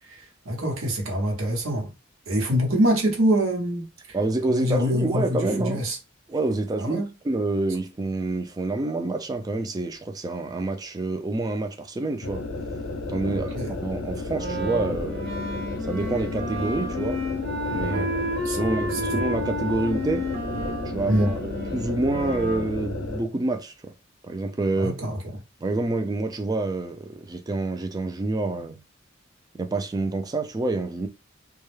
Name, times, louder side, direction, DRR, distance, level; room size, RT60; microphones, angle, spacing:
voice 1, 0.0-1.9 2.3-4.2 4.5-6.0 6.8-7.1 13.2-13.7 17.8-18.2 18.4-19.0 21.1-21.3 24.7-25.2, equal, 90° right, 0.9 m, -25 dB
voice 2, 4.1-5.9 6.3-12.4 13.1-15.3 15.8-17.2 17.7-18.1 18.5-20.3 20.8-23.9 24.2-25.0 25.6-28.8 29.6-31.1, right 2 dB, 20° right, 0.3 m, -27 dB
sound 1, 12.2-23.3, left 2 dB, 80° left, 0.5 m, -33 dB
Wind instrument woodwind instrument, 14.3-22.7, left 1 dB, 50° right, 0.9 m, -31 dB
2.3 x 2.0 x 3.1 m
head